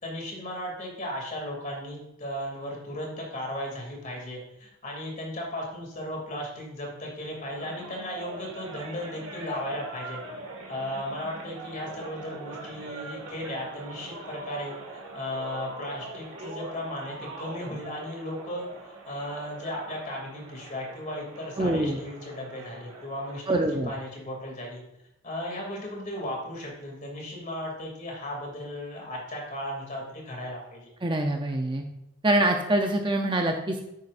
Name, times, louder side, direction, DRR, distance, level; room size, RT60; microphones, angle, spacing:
voice 1, 0.0-10.2 10.7-24.8 25.2-30.9, left 1 dB, 35° left, -1 dB, 2.7 m, -36 dB
sound 1, 7.3-23.5, right 2 dB, 65° right, 2.0 m, -42 dB
voice 2, 21.6-22.0 23.5-23.9 31.0-31.8 32.2-33.8, right 1 dB, 20° right, 3 dB, 0.6 m, -25 dB
9.6 x 9.1 x 2.6 m, 0.86 s
head